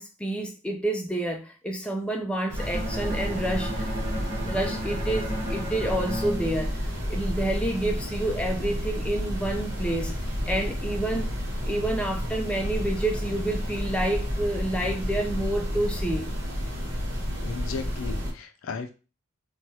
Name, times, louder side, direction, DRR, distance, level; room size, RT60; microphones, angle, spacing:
voice 1, 0.0-3.9 4.4-6.7 7.1-11.3 11.7-16.3, right 1 dB, 5° left, 2 dB, 0.3 m, -29 dB
sound 1, 2.5-18.3, equal, 55° right, 0.9 m, -31 dB
Bowed string instrument, 2.6-7.5, equal, 25° right, 0.8 m, -35 dB
voice 2, 17.4-18.9, left 5 dB, 75° left, 8 dB, 0.4 m, -35 dB
3.1 x 2.3 x 2.7 m, 0.33 s
head